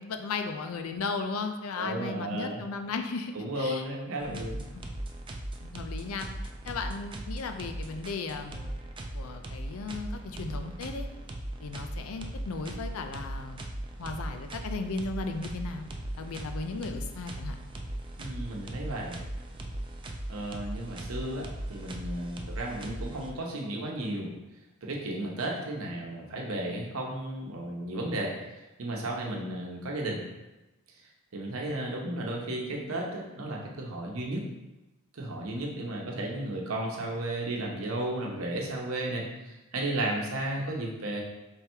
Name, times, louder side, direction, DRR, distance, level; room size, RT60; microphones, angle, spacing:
voice 1, 0.0-3.8 4.3-4.4 4.7-4.8 5.6-6.3 6.7-8.7 9.1-11.1 11.6-13.6 14.0-15.9 16.2-17.6, left 4 dB, 75° left, 6 dB, 0.4 m, -36 dB
voice 2, 1.8-2.6 3.3-4.6 18.2-19.3 20.3-24.3 24.8-28.3 28.8-30.2 31.3-34.4 35.1-41.2, right 1 dB, 75° right, -1 dB, 0.9 m, -34 dB
sound 1, 4.2-23.6, right 1 dB, 25° right, 0.4 m, -38 dB
3.5 x 3.4 x 4.4 m, 1.0 s
head